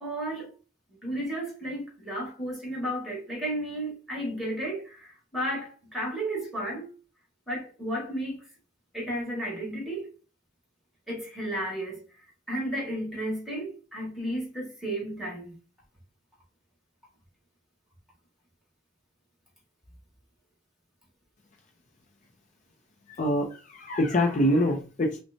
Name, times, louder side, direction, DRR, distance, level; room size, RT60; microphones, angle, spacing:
voice 1, 0.0-0.5 1.0-6.9 7.5-8.4 8.9-10.1 11.1-12.0 12.5-15.5, right 1 dB, ahead, 1.7 m, -33 dB
voice 2, 23.1-25.2, left 1 dB, 40° left, 0.6 m, -25 dB
5.8 x 2.2 x 2.7 m
head